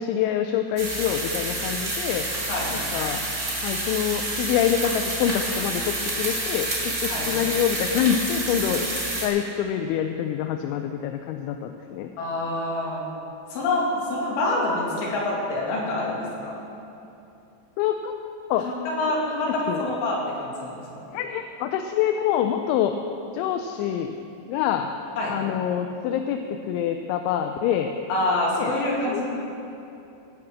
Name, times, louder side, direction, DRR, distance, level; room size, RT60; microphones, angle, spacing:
voice 1, 0.0-2.3 2.7-3.2 3.6-8.9 9.2-12.1 17.8-18.1 18.5-18.7 19.7-20.0 21.1-23.0 23.3-24.2 24.5-24.9 25.3-27.9 28.6-28.8 29.1-29.2, left 9 dB, 85° left, 6 dB, 2.8 m, -26 dB
sound 1, 0.8-9.3, right 2 dB, 30° right, 2.0 m, -28 dB
voice 2, 12.2-13.0 13.5-16.7 18.6-21.1 25.2-25.3 28.1-29.2, left 2 dB, 60° left, -4 dB, 3.7 m, -26 dB
17.5 x 5.9 x 7.3 m, 2.8 s
omnidirectional pair, 5.6 m